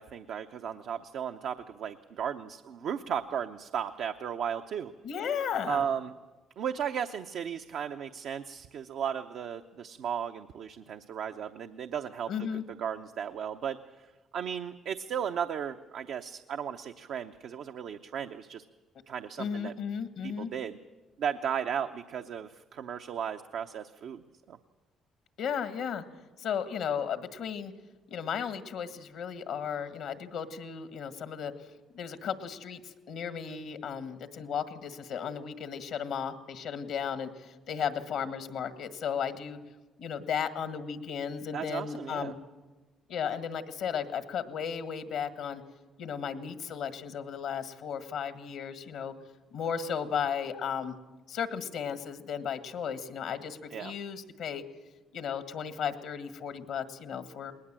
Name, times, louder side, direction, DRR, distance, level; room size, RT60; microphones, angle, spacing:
voice 1, 0.0-4.9 5.7-6.1 6.6-14.1 14.3-18.6 19.1-19.7 20.2-20.8 21.2-24.6 41.5-42.3 53.7-53.9, right 8 dB, 70° right, 6 dB, 0.7 m, -35 dB
voice 2, 5.0-5.8 12.3-12.6 19.4-20.5 25.4-26.0 26.4-27.7 28.1-31.5 31.9-39.6 40.0-42.4 43.1-45.6 46.0-49.1 49.5-50.9 51.3-54.6 55.1-57.5, left 7 dB, 75° left, 10 dB, 1.7 m, -35 dB
20.0 x 19.5 x 7.6 m, 1.2 s
supercardioid pair, 55°, 0 cm